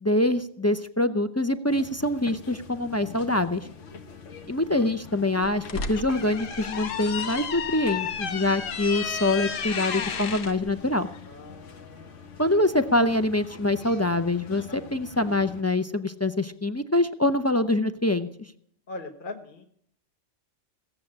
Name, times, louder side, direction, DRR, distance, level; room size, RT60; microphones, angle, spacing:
voice 1, 0.0-3.7 4.5-11.1 12.4-18.3, left 2 dB, 25° left, 8 dB, 0.3 m, -25 dB
sound 1, 1.7-15.6, left 6 dB, 70° left, 1.6 m, -45 dB
voice 2, 3.8-4.3 11.2-12.3 18.9-19.6, left 2 dB, 45° left, 4 dB, 1.3 m, -42 dB
sound 2, 5.4-10.5, left 6 dB, 90° left, 1.4 m, -32 dB
17.0 x 7.6 x 8.6 m, 0.67 s
omnidirectional pair, 1.3 m